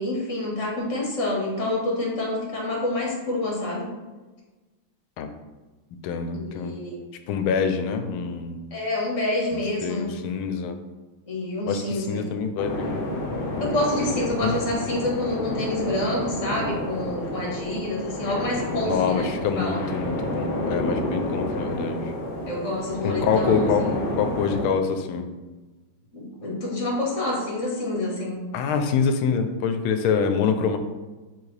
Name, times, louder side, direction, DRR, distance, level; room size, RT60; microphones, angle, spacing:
voice 1, 0.0-3.9 6.3-7.0 8.7-10.1 11.3-12.2 13.6-19.8 22.5-23.9 26.1-28.5, left 1 dB, 40° left, -2 dB, 1.7 m, -28 dB
voice 2, 6.0-6.8 7.3-8.6 9.5-10.8 11.7-13.0 14.4-14.5 18.8-22.1 23.0-23.9 24.2-25.3 28.5-30.8, left 6 dB, 80° left, 7 dB, 1.4 m, -25 dB
sound 1, 12.6-24.6, left 1 dB, 60° left, 0.5 m, -29 dB
7.2 x 4.1 x 3.3 m, 1.2 s
omnidirectional pair, 2.3 m